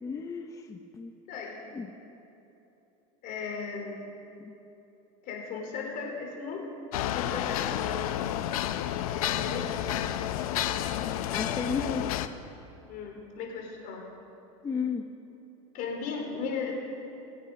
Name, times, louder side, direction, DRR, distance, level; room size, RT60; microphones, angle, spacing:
voice 1, 0.0-1.1 1.7-1.9 4.4-4.5 11.3-12.1 14.6-15.1, left 5 dB, 20° left, 5 dB, 0.6 m, -33 dB
voice 2, 1.3-1.7 3.2-4.0 5.2-6.7 7.0-8.2 9.1-10.1 12.9-14.1 15.7-16.7, left 5 dB, 55° left, 0 dB, 3.5 m, -37 dB
sound 1, 6.9-12.3, left 11 dB, 85° left, 0.7 m, -30 dB
22.5 x 8.2 x 5.2 m, 3.0 s
supercardioid pair, 115°, 18 cm